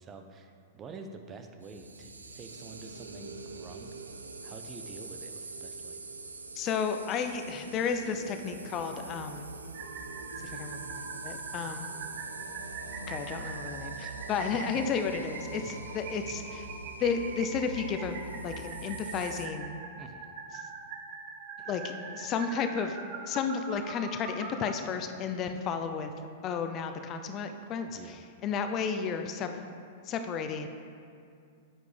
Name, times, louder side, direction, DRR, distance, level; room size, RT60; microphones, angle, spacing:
voice 1, 0.0-3.9 4.4-6.0 14.0-14.1 14.7-14.8 15.9-16.0 20.0-20.3 21.6-21.8 27.9-28.2, right 4 dB, 25° right, 6 dB, 0.8 m, -48 dB
sound 1, 1.6-19.5, right 3 dB, 90° right, 0.6 m, -44 dB
voice 2, 6.5-9.5 10.4-11.9 13.1-16.7 17.0-19.7 20.5-20.7 21.7-23.0 23.3-26.1 26.4-29.7 30.1-30.7, left 6 dB, 35° left, 7 dB, 0.6 m, -33 dB
sound 2, 9.7-24.7, right 5 dB, 50° right, 1.0 m, -43 dB
9.2 x 9.0 x 3.4 m, 2.4 s
hypercardioid pair, 105°, 0 cm